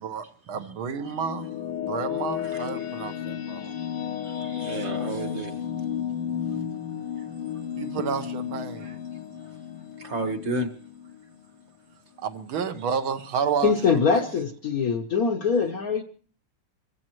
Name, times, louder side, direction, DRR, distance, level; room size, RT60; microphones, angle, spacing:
voice 1, 0.0-1.6 1.8-3.7 7.8-9.0 12.2-14.2, right 6 dB, 75° right, 1.8 m, -31 dB
sound 1, 0.6-11.9, left 9 dB, 80° left, 1.9 m, -33 dB
voice 2, 2.4-2.9 4.2-5.7 6.1-6.6 7.2-7.3 8.8-9.0 9.4-9.6 10.0-10.7, right 2 dB, 40° right, 1.3 m, -33 dB
voice 3, 13.6-16.0, left 5 dB, 55° left, 1.1 m, -23 dB
25.5 x 15.0 x 3.0 m
omnidirectional pair, 2.4 m